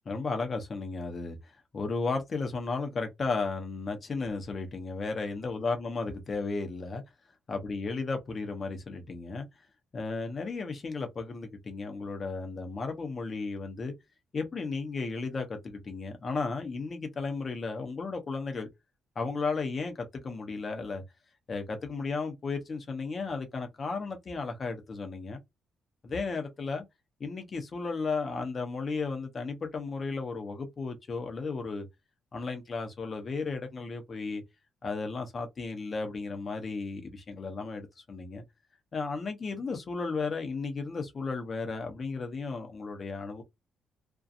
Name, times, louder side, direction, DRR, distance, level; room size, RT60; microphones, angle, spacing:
voice 1, 0.1-7.0 7.5-9.5 9.9-13.9 14.3-18.7 19.2-21.0 21.5-25.4 26.0-26.8 27.2-31.9 32.3-34.4 34.8-38.4 38.9-43.4, left 4 dB, 40° left, 0.7 m, -34 dB
2.6 x 2.2 x 2.4 m
cardioid pair, 90°, 0 cm